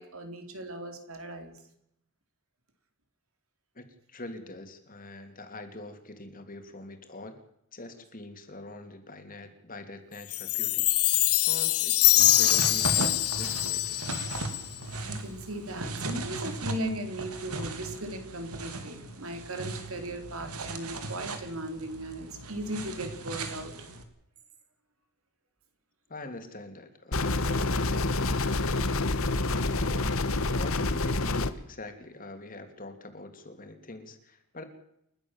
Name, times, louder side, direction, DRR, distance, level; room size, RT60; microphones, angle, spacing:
voice 1, 0.0-1.6 15.1-23.8, right 1 dB, 70° right, 6 dB, 4.0 m, -37 dB
voice 2, 3.7-7.4 7.7-10.9 11.2-13.0 13.3-14.1 26.1-28.5 29.2-30.2 30.5-34.6, left 2 dB, 40° left, 6 dB, 3.1 m, -44 dB
Chime, 10.3-14.8, left 17 dB, 85° left, 1.1 m, -24 dB
sound 1, 12.2-24.0, right 3 dB, 85° right, 2.8 m, -37 dB
sound 2, 27.1-31.5, left 2 dB, 70° left, 1.4 m, -27 dB
29.5 x 12.5 x 7.4 m, 0.78 s
head